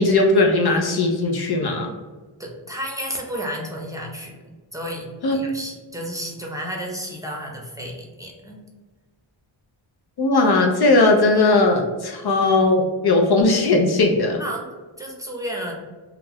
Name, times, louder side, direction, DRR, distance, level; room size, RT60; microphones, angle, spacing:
voice 1, 0.0-1.9 5.2-5.4 10.2-14.4, left 2 dB, 55° left, 2 dB, 0.5 m, -18 dB
voice 2, 2.4-4.4 4.7-8.6 14.4-14.6 15.0-15.7, equal, 5° right, -2 dB, 0.6 m, -32 dB
2.3 x 2.2 x 3.3 m, 1.2 s
cardioid pair, 60°, 47 cm